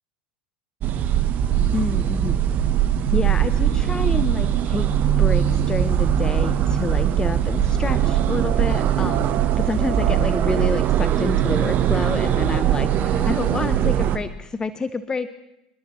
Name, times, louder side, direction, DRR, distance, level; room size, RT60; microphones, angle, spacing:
sound 1, 0.8-14.2, right 10 dB, 45° right, 1.0 m, -20 dB
voice 1, 1.7-2.4 3.1-9.3 9.6-15.3, left 4 dB, 15° left, 13 dB, 0.6 m, -28 dB
26.0 x 12.5 x 3.0 m, 0.94 s
hypercardioid pair, 90°, 4 cm